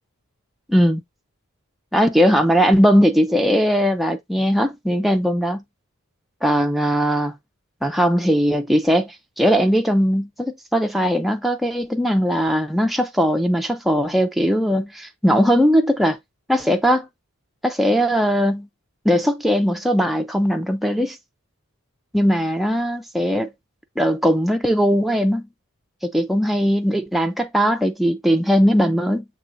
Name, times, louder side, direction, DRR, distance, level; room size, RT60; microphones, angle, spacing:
voice 1, 0.7-1.0 1.9-5.6 6.4-7.3 7.8-16.2 16.5-17.1 17.6-18.7 19.0-21.2 22.1-23.5 24.0-25.5 26.0-29.2, equal, ahead, 0.3 m, -19 dB
7.0 x 3.0 x 2.5 m
head